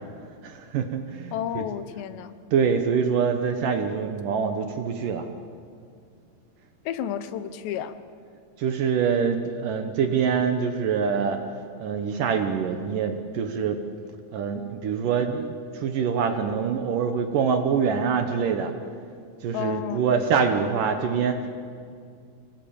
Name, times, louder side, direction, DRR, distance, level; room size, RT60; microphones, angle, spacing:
voice 1, 0.4-1.7 2.5-5.3 8.6-11.4 11.8-13.8 14.3-18.7 19.4-21.5, right 6 dB, 65° right, 6 dB, 2.3 m, -25 dB
voice 2, 1.3-2.3 6.9-8.0 19.5-20.0, left 10 dB, 85° left, 12 dB, 3.2 m, -31 dB
25.5 x 18.5 x 8.7 m, 2.3 s
omnidirectional pair, 4.9 m